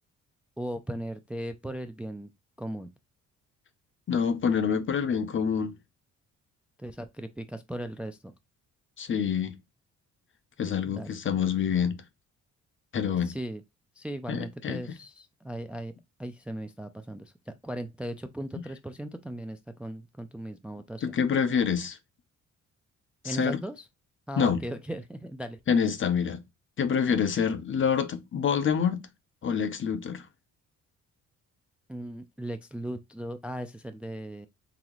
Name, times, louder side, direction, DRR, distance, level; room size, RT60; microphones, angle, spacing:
voice 1, 0.6-2.3 2.6-2.9 6.8-8.3 10.9-11.1 13.2-13.6 14.0-15.9 16.2-21.2 23.2-23.9 24.3-25.6 31.9-34.5, right 1 dB, 5° right, 0.3 m, -37 dB
voice 2, 4.1-5.7 9.0-9.5 10.6-12.0 12.9-13.3 14.3-14.8 21.0-22.0 23.2-23.6 24.4-24.6 25.7-26.4 26.8-29.1 29.4-30.2, left 7 dB, 40° left, 0.7 m, -26 dB
4.0 x 2.8 x 3.0 m
cardioid pair, 90°, 30 cm